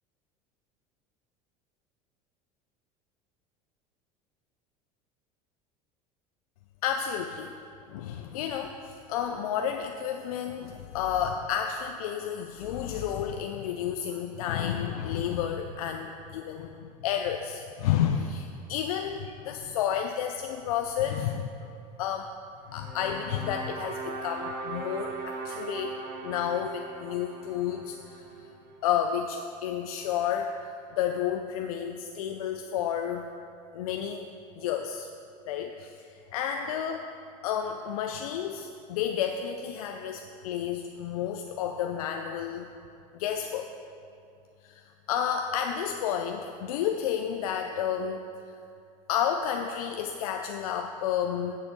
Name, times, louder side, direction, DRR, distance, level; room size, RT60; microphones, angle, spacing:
voice 1, 6.8-7.5 7.9-21.7 22.0-22.3 22.7-26.0 26.2-28.5 28.8-30.6 31.0-33.3 33.7-34.3 34.6-35.1 35.5-37.1 37.4-42.7 43.1-43.7 44.6-48.6 49.1-51.6, left 9 dB, 85° left, 5 dB, 0.5 m, -31 dB
sound 1, 22.7-28.9, right 4 dB, 60° right, 1.3 m, -39 dB
7.6 x 6.8 x 6.0 m, 2.5 s
hypercardioid pair, 90°, 18 cm